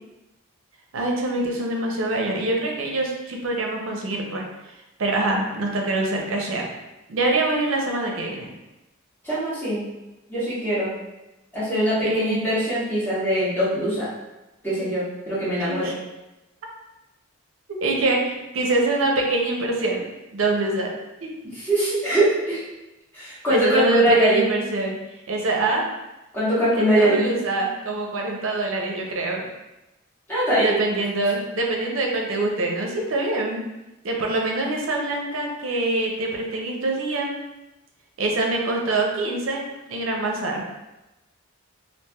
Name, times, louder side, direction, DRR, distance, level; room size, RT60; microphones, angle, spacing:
voice 1, 0.9-4.4 5.0-6.7 7.1-8.5 12.0-12.4 15.6-15.9 17.8-20.0 20.3-20.9 21.2-21.3 23.5-25.0 25.3-25.9 26.8-29.4 30.6-33.6 34.0-37.3 38.2-40.6, right 2 dB, 65° right, 0 dB, 0.5 m, -24 dB
voice 2, 9.2-9.8 10.3-10.9 11.5-14.1 14.6-15.9 21.5-22.6 23.1-24.4 26.3-27.3 30.3-30.8, right 1 dB, 10° left, -11 dB, 1.2 m, -22 dB
3.2 x 2.5 x 2.2 m, 0.99 s
head